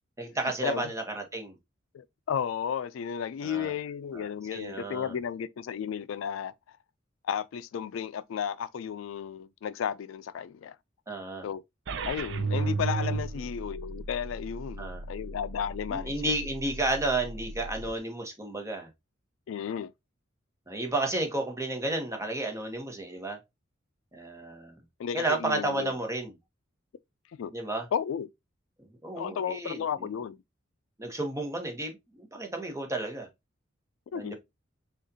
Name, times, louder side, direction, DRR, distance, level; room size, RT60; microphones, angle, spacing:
voice 1, 0.2-1.6 3.4-3.7 4.1-5.1 11.1-11.5 14.8-15.0 15.9-18.9 20.7-23.4 24.1-24.8 25.1-26.3 27.5-27.9 29.0-30.1 31.0-33.3 34.1-34.4, right 2 dB, 15° right, 1.1 m, -32 dB
voice 2, 1.9-6.5 7.2-10.8 11.4-11.6 12.1-16.1 19.5-19.9 25.0-25.9 27.4-27.5 27.9-28.3 29.2-30.4 34.1-34.4, left 8 dB, 75° left, 0.3 m, -33 dB
sound 1, 11.9-17.9, right 3 dB, 65° right, 0.5 m, -35 dB
6.3 x 2.4 x 2.7 m
head